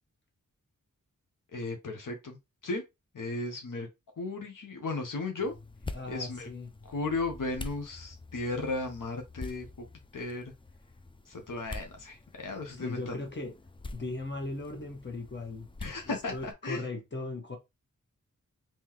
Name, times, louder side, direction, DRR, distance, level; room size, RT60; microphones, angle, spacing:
voice 1, 1.5-2.4 2.6-2.8 3.1-3.9 4.2-5.5 6.1-6.5 6.9-9.7 10.1-10.5 11.3-13.2 15.8-16.9, left 3 dB, 80° left, 0.8 m, -35 dB
sound 1, 5.4-16.5, left 2 dB, 15° left, 0.3 m, -46 dB
voice 2, 5.9-6.7 12.8-13.5 13.9-15.7 16.0-17.6, left 2 dB, 35° left, 1.2 m, -38 dB
3.7 x 3.0 x 3.0 m
wide cardioid pair, 80°, 31 cm